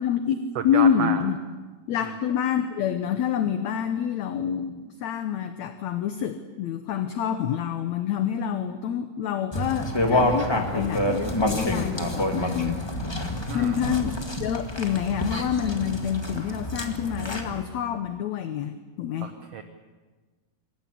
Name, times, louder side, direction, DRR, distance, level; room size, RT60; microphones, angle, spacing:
voice 1, 0.0-1.4 1.9-12.8 13.5-14.1 14.4-19.3, left 8 dB, 70° left, 9 dB, 1.9 m, -27 dB
voice 2, 0.5-1.2 2.0-2.1 13.5-13.9 19.2-19.6, right 7 dB, 60° right, 7 dB, 1.7 m, -31 dB
sound 1, 9.5-17.6, left 1 dB, 15° left, 1.0 m, -28 dB
25.5 x 14.5 x 9.8 m, 1.3 s
omnidirectional pair, 4.1 m